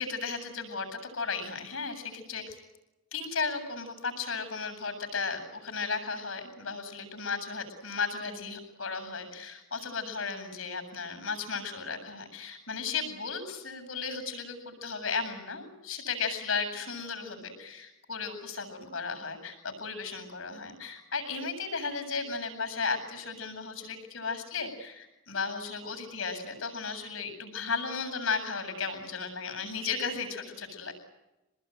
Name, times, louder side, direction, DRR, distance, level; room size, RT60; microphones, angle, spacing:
voice 1, 0.0-2.6 3.1-30.9, left 4 dB, 90° left, 6 dB, 7.8 m, -35 dB
26.5 x 20.0 x 9.3 m, 1.0 s
head